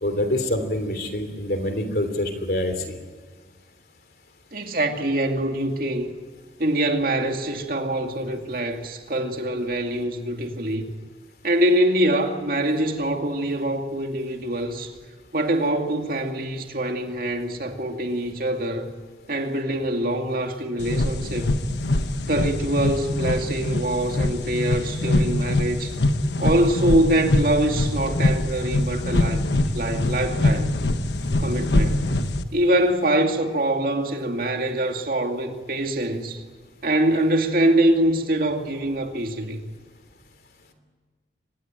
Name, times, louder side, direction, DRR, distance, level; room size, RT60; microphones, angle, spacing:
voice 1, 0.0-3.0, left 1 dB, 55° left, 3.3 m, -26 dB
voice 2, 4.5-6.1 6.6-10.9 11.4-14.9 15.3-18.9 19.3-21.5 22.3-26.0 26.4-30.7 31.4-32.1 32.5-36.4 36.8-39.6, right 1 dB, 55° right, 2.4 m, -24 dB
sound 1, 20.8-32.4, left 1 dB, 75° left, 1.3 m, -23 dB
24.5 x 20.0 x 9.1 m
head